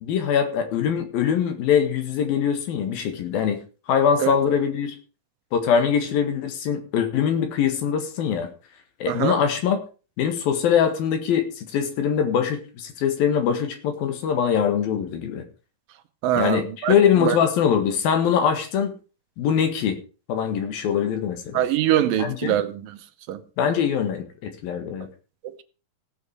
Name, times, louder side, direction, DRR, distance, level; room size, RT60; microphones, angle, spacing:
voice 1, 0.0-3.6 3.9-5.0 5.5-8.5 9.0-9.8 10.2-15.4 16.3-19.0 19.4-20.0 20.3-21.7 22.2-22.6 23.6-25.1, left 8 dB, 80° left, 3.6 m, -23 dB
voice 2, 16.2-16.9 17.2-17.4 21.5-23.0 23.3-23.4 25.4-25.6, right 12 dB, 75° right, 2.5 m, -23 dB
17.0 x 7.2 x 4.8 m
omnidirectional pair, 4.1 m